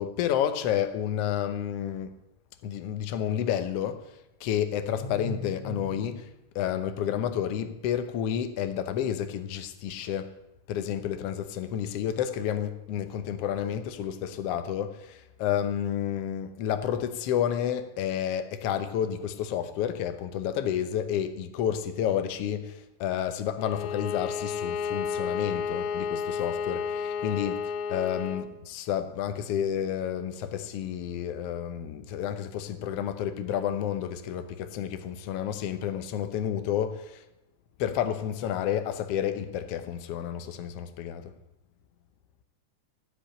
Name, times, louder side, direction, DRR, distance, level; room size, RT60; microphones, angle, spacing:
voice 1, 0.0-2.1 2.6-10.3 10.7-37.3 37.8-41.3, left 9 dB, 65° left, 1.6 m, -30 dB
Bowed string instrument, 23.6-28.5, left 6 dB, 85° left, 1.2 m, -32 dB
15.0 x 5.2 x 8.7 m
omnidirectional pair, 3.4 m